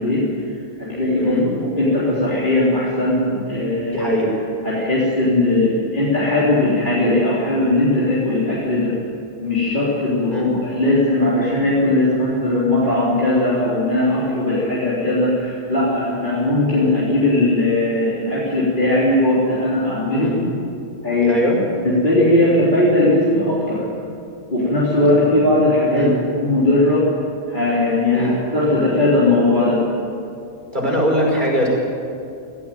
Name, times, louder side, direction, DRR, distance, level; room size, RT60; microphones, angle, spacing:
voice 1, 0.0-4.2 4.6-8.9 9.4-20.3 21.0-21.5 21.8-23.9 24.5-27.1 27.5-29.8, left 1 dB, 30° left, -8 dB, 3.8 m, -18 dB
voice 2, 3.9-4.3 10.3-10.5 20.1-20.4 21.3-21.6 25.9-26.1 28.1-28.3 30.7-31.7, equal, 30° right, -3 dB, 5.9 m, -21 dB
18.0 x 16.5 x 9.3 m, 2.4 s
omnidirectional pair, 1.5 m